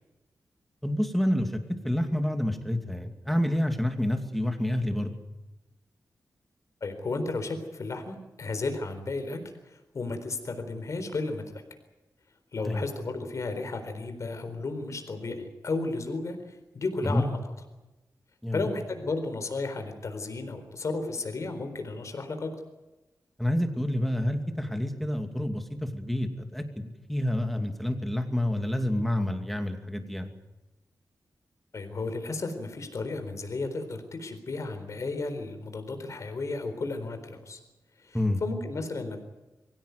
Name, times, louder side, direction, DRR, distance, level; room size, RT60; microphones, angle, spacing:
voice 1, 0.8-5.1 12.6-12.8 17.0-17.2 18.4-18.7 23.4-30.3 38.1-38.4, left 1 dB, ahead, 5 dB, 2.5 m, -28 dB
voice 2, 6.8-9.4 9.7-11.6 12.5-17.4 18.5-22.5 31.7-37.6 38.0-39.2, left 3 dB, 55° left, 7 dB, 4.1 m, -33 dB
23.5 x 17.0 x 9.5 m, 1.1 s
wide cardioid pair, 140°, 6 cm